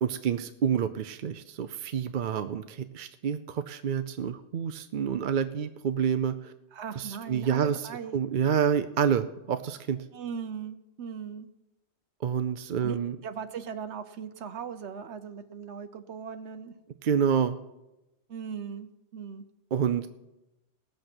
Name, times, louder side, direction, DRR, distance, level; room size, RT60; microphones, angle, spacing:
voice 1, 0.0-6.5 7.0-7.8 8.1-10.0 12.2-13.2 17.0-17.6 19.7-20.1, right 8 dB, 55° right, 10 dB, 0.6 m, -28 dB
voice 2, 6.7-8.2 10.1-11.5 12.8-16.7 18.3-19.4, right 7 dB, 80° right, 10 dB, 1.1 m, -39 dB
18.0 x 7.8 x 6.0 m, 0.96 s
omnidirectional pair, 1.1 m